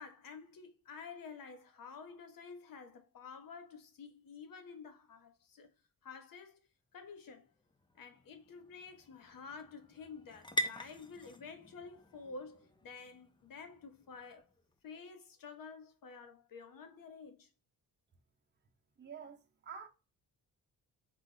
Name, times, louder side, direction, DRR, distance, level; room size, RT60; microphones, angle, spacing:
voice 1, 0.0-5.7 6.0-6.6 6.9-7.5 7.9-14.4 14.8-17.5, left 5 dB, 60° left, 1.1 m, -50 dB
sound 1, 7.0-14.8, equal, 10° left, 0.5 m, -45 dB
voice 2, 19.0-19.9, right 7 dB, 30° right, 0.8 m, -48 dB
4.2 x 2.5 x 3.9 m
cardioid pair, 80°, 38 cm